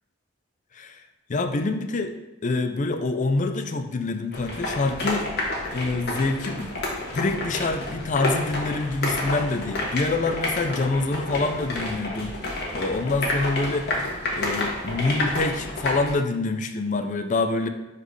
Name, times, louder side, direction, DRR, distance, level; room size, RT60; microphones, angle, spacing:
voice 1, 0.7-1.0 1.3-2.1 2.4-5.3 5.7-6.8 7.1-14.0 14.4-17.7, left 3 dB, 40° left, 7 dB, 0.5 m, -26 dB
sound 1, 4.3-16.1, left 2 dB, 55° left, 1.4 m, -30 dB
10.5 x 4.1 x 3.2 m, 1.0 s
head